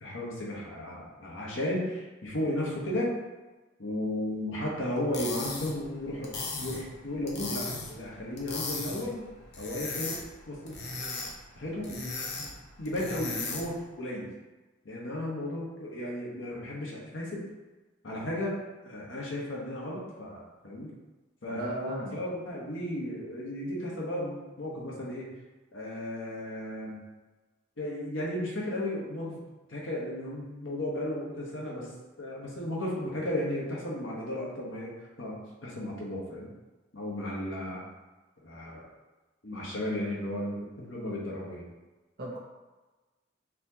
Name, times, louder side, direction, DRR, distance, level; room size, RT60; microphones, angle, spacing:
voice 1, 0.0-3.1 3.8-6.3 6.6-9.2 9.6-10.2 10.5-10.8 11.5-12.5 12.8-14.3 14.8-17.4 18.0-18.6 18.8-20.9 21.4-25.3 25.7-27.0 27.8-29.4 29.7-31.9 32.2-34.9 35.2-36.5 36.9-37.8 38.4-38.9 39.4-41.6, left 1 dB, 75° left, -4 dB, 1.0 m, -34 dB
sound 1, 4.9-13.8, left 3 dB, 55° left, 0.6 m, -38 dB
voice 2, 21.5-22.2 42.2-42.4, equal, 50° right, -4 dB, 0.7 m, -38 dB
4.2 x 2.8 x 2.8 m, 1.2 s
head